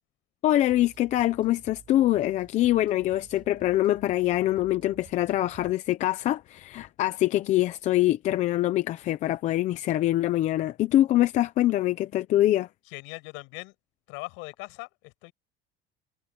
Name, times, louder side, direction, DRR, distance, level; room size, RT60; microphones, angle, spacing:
voice 1, 0.4-12.7, left 14 dB, 35° left, 0.6 m, -24 dB
sound 1, 0.6-5.7, right 7 dB, 25° right, 4.8 m, -54 dB
voice 2, 12.9-13.7 14.1-15.3, left 27 dB, 70° left, 6.6 m, -40 dB
cardioid pair, 180°, 21 cm